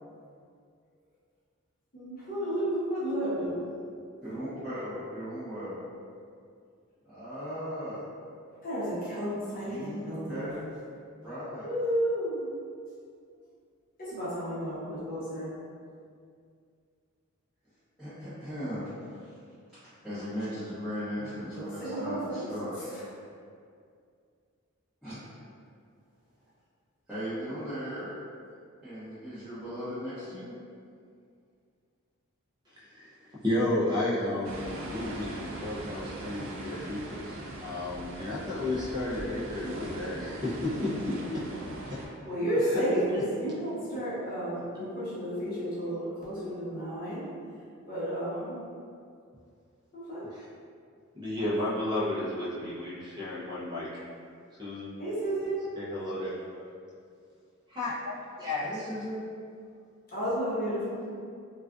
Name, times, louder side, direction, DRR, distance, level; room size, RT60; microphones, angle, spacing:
voice 1, 1.9-3.6 8.6-10.6 11.6-12.5 14.0-15.5 21.5-22.5 22.8-23.0 42.2-47.3 47.9-48.6 49.9-50.2 55.0-55.7 60.1-61.0, right 1 dB, 40° left, -10 dB, 0.8 m, -32 dB
voice 2, 4.2-5.8 7.0-8.0 9.6-10.0 10.3-10.5 11.2-11.7 18.0-19.4 19.7-23.0 25.0-25.2 27.1-28.1 28.8-30.6 43.9-44.0 44.7-44.8 58.6-59.2, equal, 5° left, -20 dB, 0.9 m, -37 dB
voice 3, 32.7-41.4 41.9-42.0 42.5-42.8 50.3-50.5 51.1-54.0 54.6-55.0 55.7-56.3 57.7-58.8, left 1 dB, 20° right, -9 dB, 0.5 m, -32 dB
sound 1, 34.4-42.1, right 1 dB, 70° right, 0.4 m, -41 dB
2.4 x 2.4 x 2.4 m, 2.3 s
head